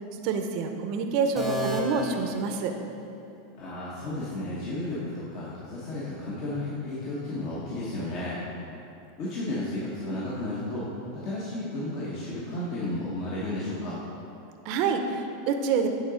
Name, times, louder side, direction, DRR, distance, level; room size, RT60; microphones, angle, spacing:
voice 1, 0.2-2.7 14.6-15.9, right 5 dB, 50° right, 5 dB, 0.6 m, -27 dB
sound 1, 1.4-3.3, right 1 dB, ahead, 0.9 m, -34 dB
voice 2, 3.6-8.4 9.2-10.9 11.1-14.0, left 1 dB, 50° left, -7 dB, 1.2 m, -33 dB
8.5 x 3.9 x 5.0 m, 2.7 s
supercardioid pair, 135°, 0 cm